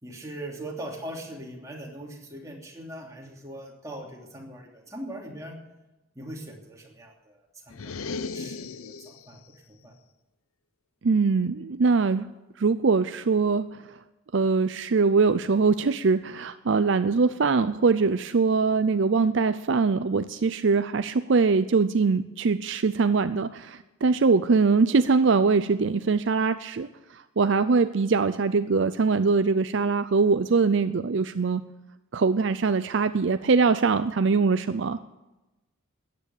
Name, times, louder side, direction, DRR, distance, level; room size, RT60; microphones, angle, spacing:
voice 1, 0.0-5.5 6.1-9.4 9.7-9.9, right 1 dB, 15° right, -1 dB, 3.0 m, -41 dB
sound 1, 7.7-9.3, left 4 dB, 85° left, 0.7 m, -36 dB
voice 2, 11.0-12.3 12.6-13.8 14.3-31.6 32.1-35.0, right 4 dB, 60° right, 12 dB, 0.5 m, -22 dB
14.0 x 9.9 x 8.4 m, 1.0 s
head